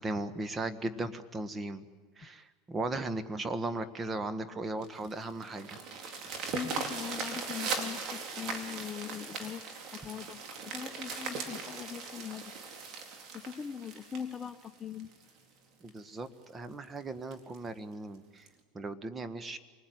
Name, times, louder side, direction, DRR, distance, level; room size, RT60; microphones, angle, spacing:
voice 1, 0.0-1.8 2.2-5.8 15.8-18.5 18.7-19.6, right 2 dB, 20° right, 10 dB, 1.5 m, -37 dB
sound 1, 4.8-15.3 15.9-16.0 16.4-16.5 16.8-16.9 17.3-17.6 18.5-18.6, right 4 dB, 50° right, 4.0 m, -39 dB
voice 2, 6.5-12.6 13.3-15.1, left 7 dB, 25° left, 10 dB, 1.0 m, -41 dB
27.5 x 20.0 x 9.4 m, 1.4 s
supercardioid pair, 110°, 0 cm